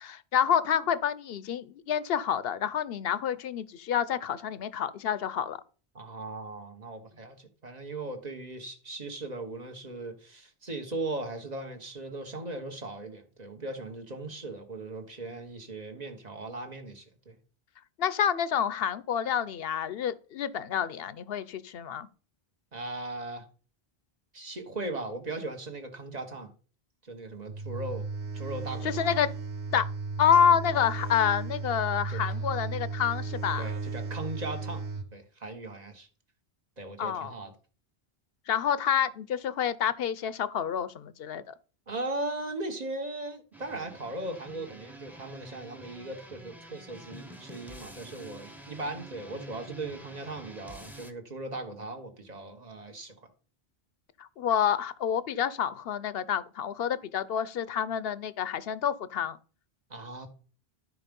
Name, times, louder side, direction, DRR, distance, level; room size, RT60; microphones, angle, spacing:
voice 1, 0.0-5.6 18.0-22.1 28.8-29.3 29.7-29.9 30.2-33.7 37.0-37.3 38.5-41.5 54.2-59.4, left 8 dB, 70° left, 0.9 m, -28 dB
voice 2, 5.9-17.4 22.7-23.5 24.3-26.5 27.0-28.1 28.3-29.1 32.1-32.2 33.6-34.8 35.1-36.1 36.8-37.5 41.9-53.2 59.9-60.3, right 2 dB, 40° right, 1.5 m, -38 dB
sound 1, 27.5-35.1, right 4 dB, 90° right, 1.4 m, -35 dB
sound 2, 43.5-51.1, right 1 dB, ahead, 0.9 m, -48 dB
12.5 x 4.8 x 5.3 m
omnidirectional pair, 1.1 m